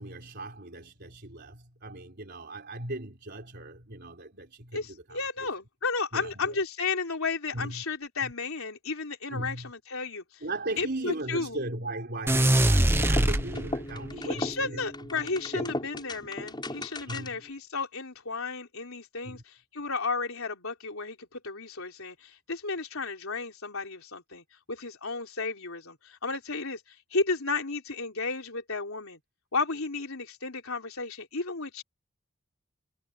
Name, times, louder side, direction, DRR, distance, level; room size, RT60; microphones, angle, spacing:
voice 1, 0.0-5.2 6.1-6.6 7.5-7.8 8.2-8.3 9.3-9.7 10.4-14.8 15.5-15.7 17.1-17.4 19.2-19.4, right 2 dB, 50° right, 4.0 m, -37 dB
voice 2, 4.7-10.4 10.8-11.6 14.2-29.2 29.5-31.8, left 4 dB, 80° left, 3.7 m, -33 dB
sound 1, 12.3-14.0, right 1 dB, 10° right, 0.9 m, -23 dB
sound 2, 12.8-17.5, left 1 dB, 20° left, 7.7 m, -36 dB
head